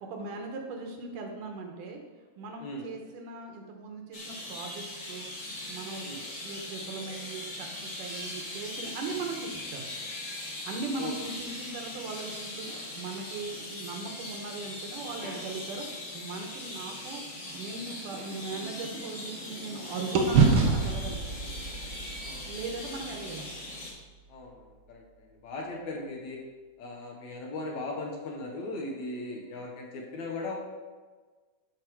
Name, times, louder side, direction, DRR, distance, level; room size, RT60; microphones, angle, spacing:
voice 1, 0.0-2.0 2.4-5.3 5.7-9.9 10.7-17.2 17.5-21.2 22.5-23.6, right 3 dB, 70° right, 2 dB, 2.6 m, -39 dB
sound 1, 4.1-23.9, left 1 dB, 30° left, 1.5 m, -40 dB
sound 2, 17.4-19.8 20.1-24.4, right 5 dB, 90° right, 1.1 m, -29 dB
voice 2, 24.3-25.0 25.4-26.4 26.8-30.5, left 2 dB, 60° left, 0 dB, 2.4 m, -38 dB
12.5 x 5.7 x 4.7 m, 1.4 s
omnidirectional pair, 4.0 m